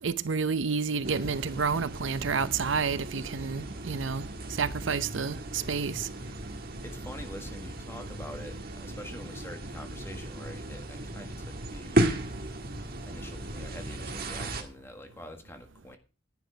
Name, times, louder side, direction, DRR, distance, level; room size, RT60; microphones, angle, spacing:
voice 1, 0.0-6.1, right 5 dB, 70° right, 0.7 m, -30 dB
sound 1, 1.0-14.6, right 1 dB, 50° right, 1.7 m, -35 dB
voice 2, 6.8-12.1 13.0-16.0, left 1 dB, 10° left, 1.7 m, -45 dB
10.5 x 9.8 x 4.7 m
head